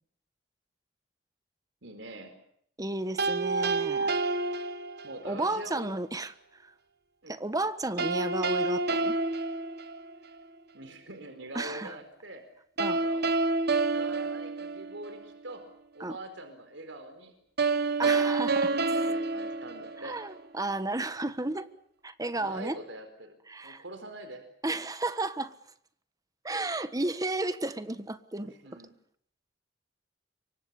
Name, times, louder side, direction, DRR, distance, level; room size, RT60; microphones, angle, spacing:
voice 1, 1.8-2.3 5.0-5.9 7.2-7.3 10.7-12.4 12.9-13.2 13.9-15.6 15.9-17.3 18.0-20.2 22.4-23.4 23.6-24.4 28.6-28.9, right 1 dB, 90° right, 7 dB, 4.6 m, -44 dB
voice 2, 2.8-4.1 5.2-6.7 7.3-9.2 11.5-11.9 12.8-13.0 16.0-16.2 18.0-18.7 20.0-21.7 22.0-22.8 23.5-23.8 24.6-25.5 26.4-28.5, right 2 dB, 20° right, 12 dB, 1.4 m, -33 dB
sound 1, 3.2-5.3 8.0-10.4 12.8-15.3 17.6-20.4, right 3 dB, 60° right, 1.2 m, -28 dB
27.0 x 24.0 x 7.1 m, 0.67 s
head